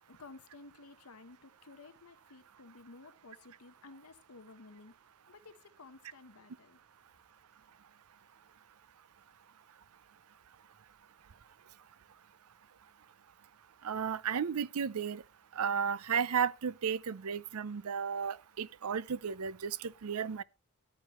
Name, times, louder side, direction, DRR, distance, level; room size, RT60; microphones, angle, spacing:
voice 1, 0.1-4.9 5.3-6.8, left 3 dB, 75° left, 1.0 m, -54 dB
voice 2, 13.8-15.2 15.6-20.4, right 7 dB, 75° right, 0.5 m, -34 dB
14.0 x 11.0 x 3.0 m
head